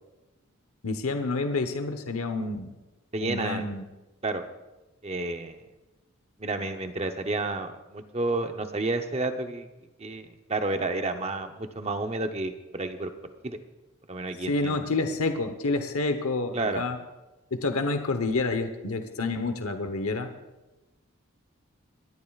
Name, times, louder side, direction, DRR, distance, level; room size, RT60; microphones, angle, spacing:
voice 1, 0.8-2.7 3.2-3.8 14.5-17.0 17.5-20.3, left 3 dB, 80° left, 7 dB, 1.0 m, -28 dB
voice 2, 3.1-3.6 4.2-4.4 5.0-5.6 6.4-9.7 10.0-13.1 13.4-13.6 14.1-14.9 16.5-16.8, right 2 dB, 30° right, 7 dB, 0.8 m, -30 dB
26.0 x 12.0 x 2.4 m, 1.1 s
head